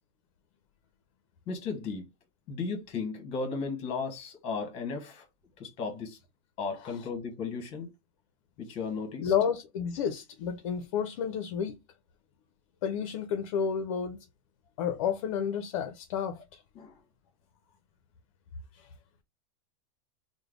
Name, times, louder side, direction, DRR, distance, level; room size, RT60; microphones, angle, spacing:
voice 1, 1.5-2.1 2.5-5.2 5.6-6.2 6.6-7.9 8.6-9.3 16.7-17.0, left 4 dB, 35° left, 1.2 m, -35 dB
voice 2, 9.2-11.7 12.8-14.2 14.8-16.6 18.8-18.9, left 7 dB, 60° left, 0.6 m, -31 dB
3.3 x 2.1 x 3.6 m
supercardioid pair, 155°, 17 cm